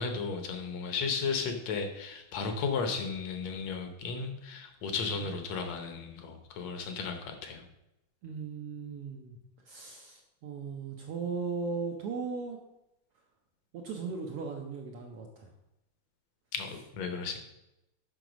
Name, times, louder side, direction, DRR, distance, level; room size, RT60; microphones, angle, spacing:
voice 1, 0.0-7.6 16.5-17.4, left 5 dB, 70° left, 6 dB, 1.9 m, -34 dB
voice 2, 8.2-9.4 9.7-12.6 13.7-15.5, right 5 dB, 70° right, 1 dB, 1.4 m, -37 dB
7.8 x 5.8 x 5.0 m, 0.89 s
omnidirectional pair, 3.5 m